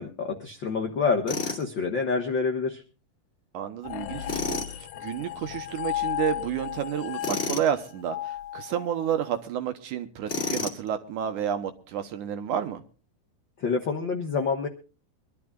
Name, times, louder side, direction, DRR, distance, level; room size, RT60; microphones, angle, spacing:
voice 1, 0.0-2.8 13.6-14.7, left 4 dB, 70° left, 2 dB, 1.1 m, -27 dB
Tools, 1.3-1.6 4.3-4.7 7.2-7.7 10.3-10.9, left 4 dB, 30° left, 1.5 m, -30 dB
voice 2, 3.5-12.8, right 9 dB, 70° right, 8 dB, 2.2 m, -30 dB
sound 1, 3.8-9.3, left 12 dB, 90° left, 1.6 m, -34 dB
24.5 x 12.0 x 2.3 m, 0.36 s
omnidirectional pair, 4.2 m